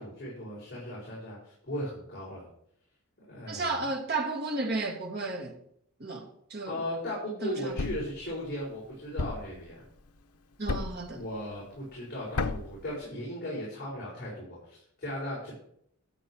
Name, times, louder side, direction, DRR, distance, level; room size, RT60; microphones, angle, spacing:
voice 1, 0.0-2.5 3.3-3.8 6.7-9.8 11.1-15.5, left 1 dB, 45° left, 5.8 m, -37 dB
voice 2, 3.5-5.6 6.0-6.8 7.4-7.8 10.6-11.2, right 3 dB, 45° right, 2.3 m, -33 dB
Thump thud, 7.8-8.2 9.2-9.6 10.7-11.1 12.4-12.8, left 3 dB, 85° left, 0.8 m, -31 dB
13.0 x 8.2 x 4.8 m
head